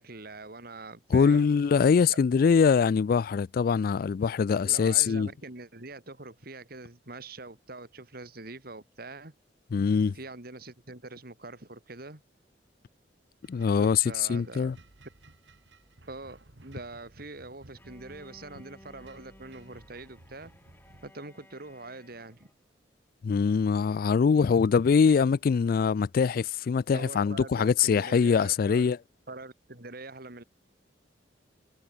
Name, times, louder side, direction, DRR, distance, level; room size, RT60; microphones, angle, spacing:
voice 1, 0.0-1.5 2.1-2.2 4.6-9.3 10.1-12.2 13.8-14.8 16.1-20.5 21.0-22.5 26.9-28.8 29.3-30.4, right 2 dB, 55° right, 3.0 m, -44 dB
voice 2, 1.1-5.3 9.7-10.1 13.5-14.8 23.2-29.0, left 6 dB, 50° left, 0.3 m, -23 dB
sound 1, 13.4-21.1, right 2 dB, 80° right, 2.0 m, -56 dB
Bowed string instrument, 17.8-22.6, left 1 dB, 10° left, 7.9 m, -56 dB
head